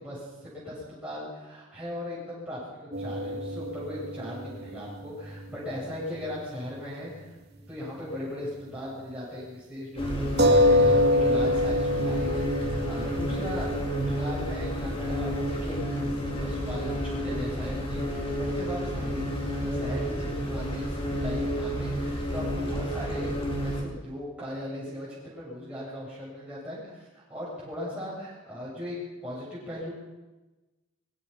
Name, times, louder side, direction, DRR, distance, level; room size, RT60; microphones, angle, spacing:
voice 1, 0.0-29.9, left 1 dB, 5° right, -8 dB, 7.9 m, -38 dB
sound 1, 2.9-6.8 7.1-7.2 10.4-15.6, left 1 dB, 50° right, 3.2 m, -27 dB
sound 2, 10.0-23.8, equal, 25° left, 4.4 m, -30 dB
23.5 x 23.0 x 5.9 m, 1.1 s
head